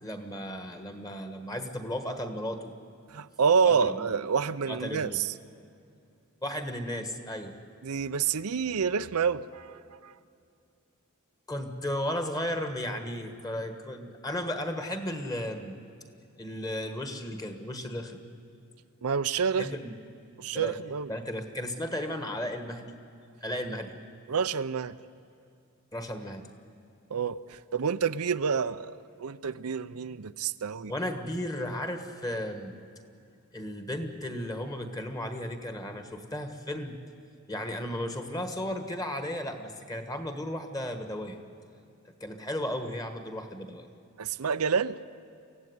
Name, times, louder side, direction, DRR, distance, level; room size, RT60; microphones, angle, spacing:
voice 1, 0.0-2.7 3.6-4.1 4.7-5.2 6.4-7.5 11.5-15.8 16.4-18.2 19.5-20.0 20.5-20.7 21.1-23.0 23.4-24.0 25.9-26.5 30.9-32.8 33.5-37.0 37.5-41.4 42.2-43.9, left 1 dB, 15° left, 7 dB, 1.5 m, -34 dB
voice 2, 3.1-5.3 7.8-10.1 19.0-19.7 20.4-21.1 24.3-24.9 27.1-30.9 44.2-45.0, right 6 dB, 90° right, 12 dB, 0.6 m, -28 dB
24.0 x 16.0 x 9.6 m, 2.5 s
head